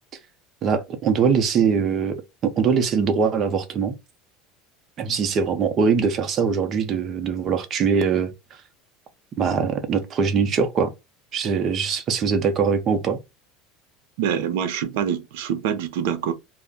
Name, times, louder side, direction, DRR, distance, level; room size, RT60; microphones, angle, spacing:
voice 1, 0.6-2.2 2.4-3.9 5.0-8.3 9.4-10.9 11.3-13.2, right 6 dB, 35° right, 0.6 m, -22 dB
voice 2, 14.2-16.3, right 8 dB, 80° right, 0.6 m, -25 dB
2.4 x 2.0 x 3.5 m
supercardioid pair, 145°, 0 cm